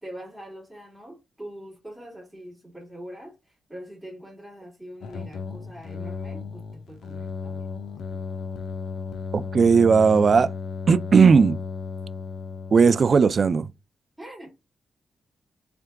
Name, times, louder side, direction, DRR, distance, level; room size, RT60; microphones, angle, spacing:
voice 1, 0.0-3.3 3.7-7.7 8.1-8.2 14.2-14.5, equal, ahead, 2.5 m, -43 dB
sound 1, 5.0-13.6, left 5 dB, 85° left, 0.6 m, -35 dB
voice 2, 9.3-10.5 10.9-11.6 12.7-13.7, right 5 dB, 45° right, 0.3 m, -17 dB
3.7 x 3.4 x 3.5 m
wide cardioid pair, 120°, 0 cm